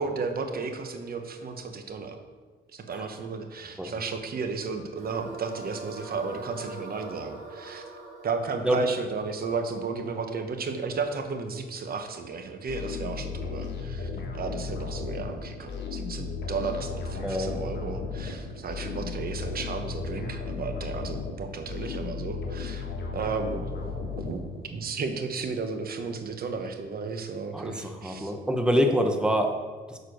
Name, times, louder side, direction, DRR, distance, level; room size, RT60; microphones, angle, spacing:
voice 1, 0.0-2.2 2.7-7.8 8.2-22.8 23.1-23.7 24.2-28.3, right 4 dB, 50° right, 6 dB, 1.0 m, -34 dB
sound 1, 5.0-10.2, right 3 dB, 80° right, 1.6 m, -43 dB
sound 2, 12.7-24.9, left 4 dB, 60° left, 1.4 m, -35 dB
voice 2, 17.2-17.6 27.5-29.5, equal, 5° right, 4 dB, 0.9 m, -25 dB
6.7 x 4.5 x 6.2 m, 1.5 s
cardioid pair, 90°, 20 cm